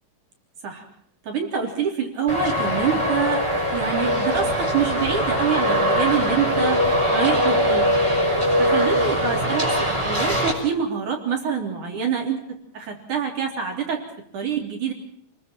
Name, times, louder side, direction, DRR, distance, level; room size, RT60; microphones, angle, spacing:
voice 1, 1.2-3.4 3.7-6.8 7.1-8.0 8.6-12.4 12.7-14.0 14.3-14.9, right 7 dB, 45° right, 2 dB, 4.5 m, -26 dB
Traffic noise roadway noise, 2.3-10.5, equal, 5° right, 5.1 m, -21 dB
30.0 x 22.0 x 4.5 m, 0.68 s
omnidirectional pair, 5.4 m